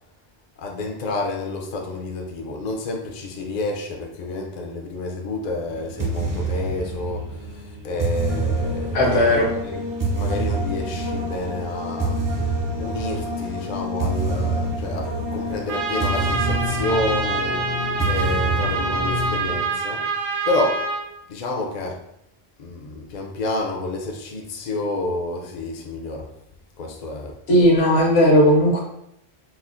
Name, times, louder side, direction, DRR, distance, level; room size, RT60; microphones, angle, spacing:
voice 1, 0.6-9.8 10.1-12.2 12.8-20.0 20.5-20.8 21.3-22.0 22.6-26.3 26.8-27.4, left 2 dB, 55° left, 1 dB, 0.5 m, -29 dB
sound 1, 5.7-19.5, right 1 dB, 30° right, 0.3 m, -26 dB
voice 2, 8.9-9.5 27.5-28.8, equal, 75° left, -1 dB, 1.0 m, -16 dB
Trumpet, 15.7-21.1, right 3 dB, 60° right, 0.6 m, -26 dB
4.3 x 2.0 x 2.5 m, 0.79 s
omnidirectional pair, 1.1 m